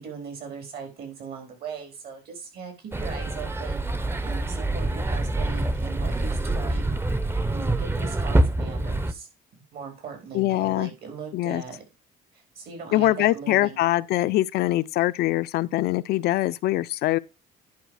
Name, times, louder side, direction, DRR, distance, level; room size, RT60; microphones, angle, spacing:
voice 1, 0.0-3.9 4.2-7.0 7.5-9.3 9.5-11.8 12.3-13.8, right 6 dB, 65° right, 4.3 m, -39 dB
sound 1, 2.9-9.1, right 2 dB, 15° right, 0.7 m, -26 dB
voice 2, 10.3-10.9 11.3-11.6 12.9-17.2, left 15 dB, 70° left, 0.4 m, -23 dB
10.5 x 4.9 x 4.8 m
cardioid pair, 110°, 17 cm